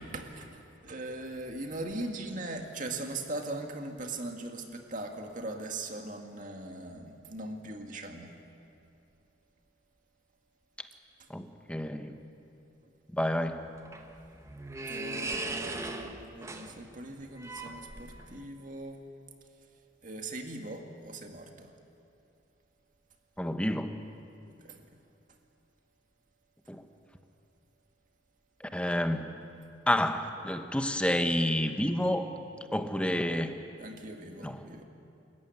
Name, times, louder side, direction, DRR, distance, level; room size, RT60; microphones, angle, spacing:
voice 1, 0.0-8.3 12.8-12.9 14.9-19.0 20.0-21.7 24.6-25.0 33.8-34.8, right 2 dB, 45° right, 4 dB, 2.1 m, -40 dB
voice 2, 11.3-12.1 13.1-13.7 23.4-24.0 26.7-26.8 28.7-29.3 29.9-32.3 32.7-33.6 34.4-34.6, left 1 dB, 5° left, 7 dB, 1.1 m, -29 dB
sound 1, 13.5-18.4, right 2 dB, 15° right, 1.1 m, -39 dB
28.0 x 14.5 x 9.5 m, 2.6 s
head